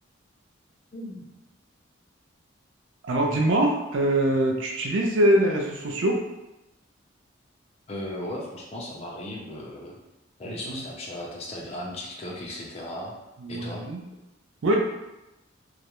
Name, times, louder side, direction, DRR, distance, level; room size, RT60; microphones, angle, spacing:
voice 1, 0.9-1.3 7.9-10.0 10.4-13.2 13.5-13.8, left 1 dB, 30° left, -3 dB, 0.4 m, -36 dB
voice 2, 3.0-6.2 13.4-14.0 14.6-14.8, right 1 dB, 70° right, 0 dB, 0.4 m, -23 dB
2.3 x 2.0 x 2.9 m, 0.97 s
head